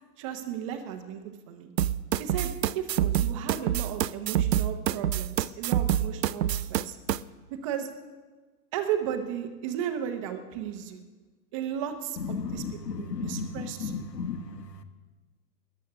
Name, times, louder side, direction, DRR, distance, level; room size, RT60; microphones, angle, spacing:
voice 1, 0.2-1.7 2.2-7.0 7.5-7.9 8.7-11.0 11.5-12.6 13.0-13.9, right 9 dB, 20° right, 6 dB, 0.7 m, -34 dB
sound 1, 1.8-7.2, right 11 dB, 85° right, 0.6 m, -26 dB
voice 2, 12.2-14.4, left 5 dB, 90° left, 10 dB, 1.4 m, -34 dB
13.5 x 10.5 x 6.7 m, 1.3 s
hypercardioid pair, 145°, 48 cm